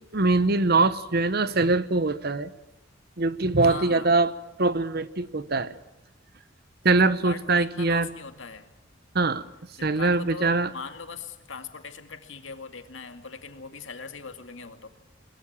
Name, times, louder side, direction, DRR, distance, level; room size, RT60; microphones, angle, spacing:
voice 1, 0.1-2.5 3.2-4.3 4.6-5.7 6.8-8.1 9.1-9.4 9.8-10.7, right 3 dB, 55° right, 15 dB, 1.1 m, -23 dB
voice 2, 3.6-4.2 7.0-8.7 9.8-14.9, left 4 dB, 75° left, 7 dB, 2.2 m, -40 dB
22.0 x 21.5 x 7.3 m, 0.93 s
head